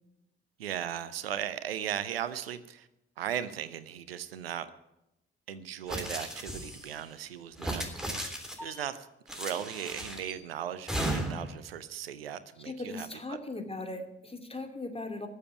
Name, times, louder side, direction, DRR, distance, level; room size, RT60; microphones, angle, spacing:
voice 1, 0.6-2.9 3.2-4.7 5.5-7.8 8.2-13.4, right 10 dB, 90° right, 15 dB, 0.5 m, -37 dB
sound 1, 5.9-6.9 7.5-8.7 9.3-10.3 10.9-11.5, right 1 dB, ahead, 3.4 m, -35 dB
voice 2, 12.6-15.3, left 2 dB, 20° left, 5 dB, 2.5 m, -38 dB
13.0 x 7.3 x 10.0 m, 0.88 s
figure-of-eight pair, 40°, 29 cm